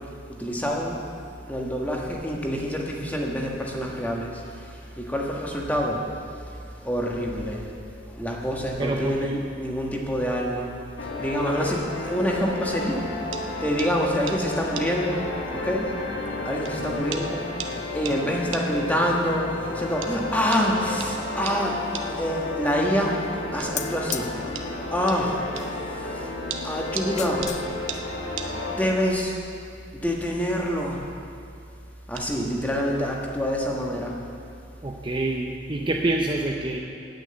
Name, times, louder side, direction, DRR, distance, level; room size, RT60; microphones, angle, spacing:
voice 1, 0.4-1.0 1.5-6.1 6.4-6.5 6.8-10.7 11.2-16.0 16.4-21.8 22.1-23.3 23.5-24.3 24.6-25.4 25.7-26.3 26.6-27.6 28.7-29.4 29.9-31.0 32.1-34.2, equal, 10° left, -2 dB, 1.4 m, -27 dB
voice 2, 8.8-9.4 16.9-17.0 34.8-36.8, right 2 dB, 25° right, 0 dB, 0.6 m, -27 dB
sound 1, 11.0-28.8, left 2 dB, 65° left, 1.6 m, -33 dB
sound 2, 13.3-13.5 13.8-13.9 14.3-14.4 14.8-14.9 15.9-16.0 16.7-16.8 17.1-17.3 17.6-17.8 18.1-18.2 18.5-18.7 20.0-20.1 20.5-20.7 21.0-21.1 21.5-21.6 21.9-22.1 23.6-23.7 24.1-24.2 24.6-24.7 25.1-25.2 25.6-25.7 26.5-27.1 27.4-27.6 27.9-28.0 28.4-28.5 30.2-30.4 30.7-31.0 32.2-32.3, right 8 dB, 80° right, 0.9 m, -35 dB
sound 3, 23.8-24.3 25.5-26.0 27.0-27.7 27.9-28.0, left 9 dB, 35° left, 0.5 m, -34 dB
9.1 x 9.1 x 8.7 m, 2.5 s
head